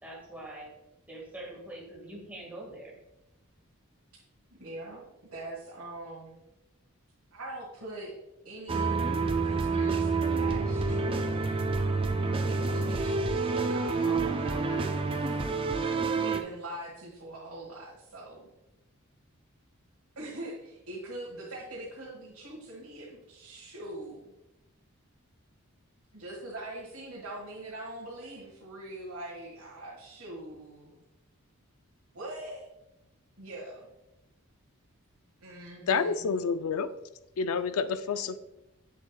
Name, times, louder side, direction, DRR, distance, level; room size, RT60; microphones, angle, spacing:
voice 1, 0.0-0.7 1.1-3.0, right 1 dB, 5° right, -4 dB, 1.7 m, -44 dB
voice 2, 4.5-6.4 7.3-8.1 8.4-9.2 9.4-11.3 12.5-15.4 16.1-18.5 20.1-24.3 26.1-31.0 32.1-32.7 33.4-33.9 35.4-36.3, right 1 dB, 90° right, -5 dB, 1.6 m, -43 dB
sound 1, 8.7-16.4, right 4 dB, 25° right, 0.3 m, -28 dB
voice 3, 35.9-36.9 37.4-38.4, left 5 dB, 80° left, 12 dB, 0.4 m, -28 dB
7.4 x 6.7 x 2.2 m, 0.92 s
head